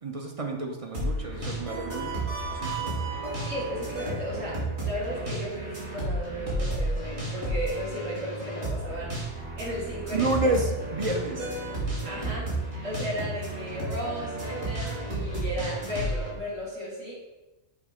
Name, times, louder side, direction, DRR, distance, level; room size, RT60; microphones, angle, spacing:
voice 1, 0.0-2.2 2.5-2.9 10.1-11.5, right 2 dB, 40° right, 2 dB, 0.5 m, -29 dB
sound 1, 0.9-16.3, right 1 dB, 60° right, 2.5 m, -32 dB
voice 2, 3.5-4.5 4.8-9.2 9.5-10.5 12.0-12.4 12.8-17.4, equal, 80° right, -7 dB, 2.5 m, -35 dB
7.2 x 3.1 x 4.9 m, 1.1 s
omnidirectional pair, 1.3 m